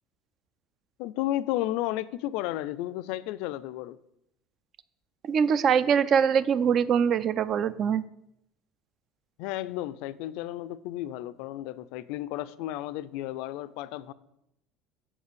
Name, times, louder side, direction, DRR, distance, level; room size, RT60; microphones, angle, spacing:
voice 1, 1.0-4.0 9.4-14.1, left 14 dB, 65° left, 16 dB, 0.4 m, -33 dB
voice 2, 5.2-8.0, right 7 dB, 30° right, 17 dB, 0.3 m, -23 dB
7.0 x 5.4 x 6.8 m, 0.81 s
cardioid pair, 175°, 0 cm